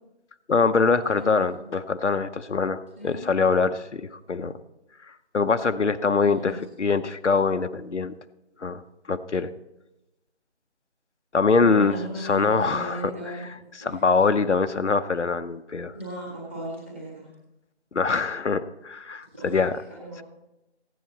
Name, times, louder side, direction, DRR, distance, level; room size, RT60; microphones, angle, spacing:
voice 1, 0.5-4.0 4.3-4.6 5.3-8.1 8.6-8.8 9.1-9.5 11.3-13.1 13.8-15.9 17.9-19.7, left 4 dB, 85° left, 9 dB, 0.8 m, -23 dB
voice 2, 1.1-1.6 3.0-3.2 6.2-6.6 11.5-13.5 13.8-14.0 15.9-17.3 19.3-20.2, equal, 10° right, -4 dB, 1.8 m, -37 dB
15.5 x 9.5 x 4.1 m, 0.95 s
figure-of-eight pair, 170°, 34 cm